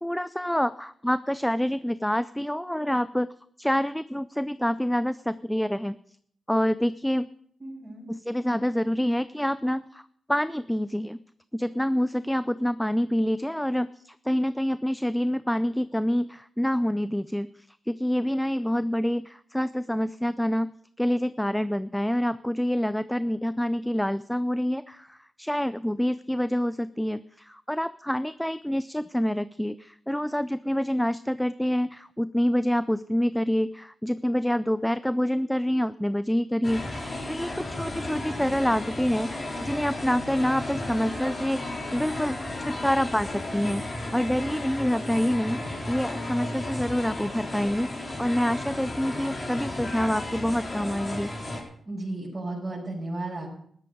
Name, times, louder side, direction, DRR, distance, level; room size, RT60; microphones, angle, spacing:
voice 1, 0.0-3.3 3.6-6.0 6.5-7.3 8.1-11.2 11.5-17.5 17.9-20.7 21.0-43.8 44.1-51.3, equal, 5° left, 14 dB, 0.4 m, -27 dB
voice 2, 7.6-8.1 51.9-53.5, right 2 dB, 25° right, -6 dB, 5.5 m, -34 dB
sound 1, 36.6-51.6, left 1 dB, 35° left, 4.3 m, -34 dB
13.5 x 12.5 x 5.2 m, 0.64 s
cardioid pair, 75°, 0 cm